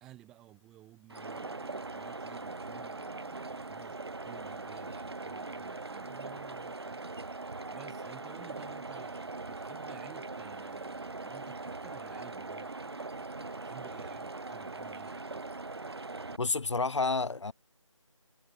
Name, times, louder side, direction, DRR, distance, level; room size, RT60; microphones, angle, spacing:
voice 1, 0.0-15.4, right 15 dB, 5° right, 1.5 m, -55 dB
sound 1, 1.1-16.4, right 3 dB, 50° right, 1.1 m, -41 dB
voice 2, 16.4-17.5, left 3 dB, 60° left, 0.8 m, -29 dB
figure-of-eight pair, 175°, 17 cm